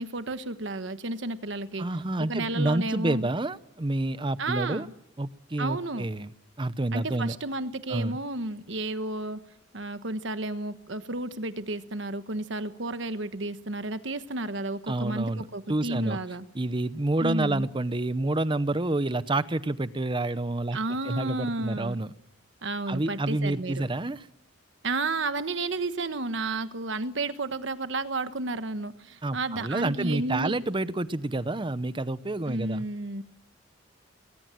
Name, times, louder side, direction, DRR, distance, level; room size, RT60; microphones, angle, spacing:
voice 1, 0.0-1.9 2.2-3.3 4.4-4.9 5.6-6.1 6.9-9.4 9.7-16.4 17.2-17.7 20.7-22.0 22.6-23.9 24.8-30.5 32.5-33.2, right 2 dB, 70° right, 10 dB, 1.3 m, -32 dB
voice 2, 1.8-4.9 5.2-6.3 6.6-7.4 7.9-8.2 14.9-15.4 15.7-16.2 16.5-20.8 21.1-22.1 22.9-24.2 29.2-32.9, right 2 dB, 25° right, 15 dB, 0.7 m, -28 dB
20.5 x 18.5 x 7.6 m, 0.86 s
head